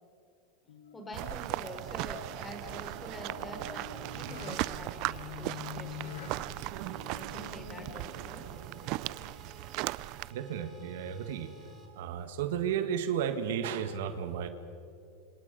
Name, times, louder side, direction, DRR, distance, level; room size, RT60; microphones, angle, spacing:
sound 1, 0.7-9.8, left 8 dB, 80° left, 1.9 m, -48 dB
voice 1, 0.9-6.5 7.1-8.4, left 1 dB, 15° left, 4 dB, 4.3 m, -46 dB
sound 2, 1.1-10.3, right 20 dB, 55° right, 0.5 m, -38 dB
sound 3, 1.5-11.9, left 1 dB, 15° right, 4.9 m, -57 dB
voice 2, 10.3-11.5 12.0-14.5, right 8 dB, 75° right, 9 dB, 1.8 m, -33 dB
27.0 x 26.5 x 5.5 m, 2.7 s
supercardioid pair, 120°, 0 cm